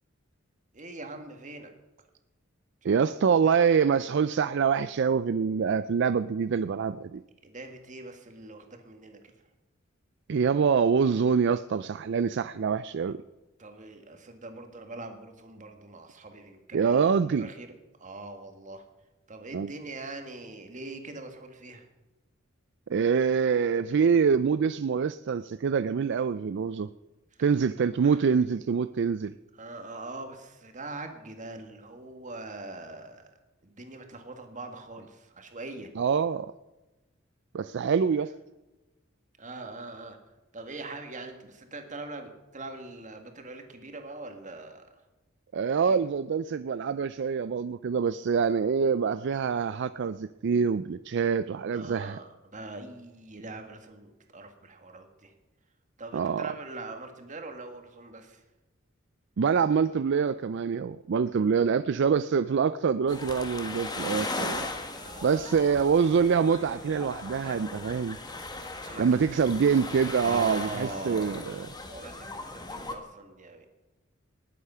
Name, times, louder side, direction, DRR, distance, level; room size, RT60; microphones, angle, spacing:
voice 1, 0.7-1.7 2.9-3.1 7.4-9.3 13.0-13.1 13.6-17.1 17.4-17.7 18.0-18.8 19.3-21.9 28.0-28.3 29.5-33.3 33.6-35.9 39.4-40.2 40.5-45.0 45.9-46.0 51.7-55.3 56.0-58.4 64.9-65.5 68.9-69.4 70.2-71.5 71.8-73.7, right 2 dB, 40° right, 5 dB, 1.9 m, -42 dB
voice 2, 2.8-7.2 10.3-13.2 16.7-17.5 19.5-19.7 22.9-26.9 27.4-29.3 36.0-36.5 37.5-38.3 45.5-52.2 56.1-56.5 59.4-64.7 65.2-68.2 69.0-71.6, right 6 dB, 60° right, 14 dB, 0.4 m, -25 dB
sound 1, 63.1-73.0, left 2 dB, 20° left, 1.5 m, -38 dB
19.5 x 8.3 x 5.7 m, 1.1 s
head